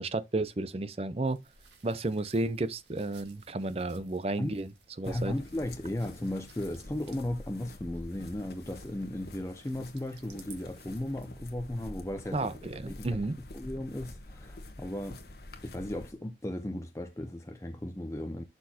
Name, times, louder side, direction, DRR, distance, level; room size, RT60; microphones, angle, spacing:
voice 1, 0.0-1.4 1.8-4.7 5.0-5.3 12.3-13.4, right 2 dB, 35° right, 0.6 m, -32 dB
sound 1, 1.2-11.3, right 6 dB, 85° right, 1.9 m, -59 dB
sound 2, 5.0-16.1, left 1 dB, 65° left, 1.3 m, -47 dB
voice 2, 5.0-13.2 13.5-15.2 15.6-18.4, left 1 dB, 15° left, 0.6 m, -36 dB
11.5 x 4.4 x 2.8 m
head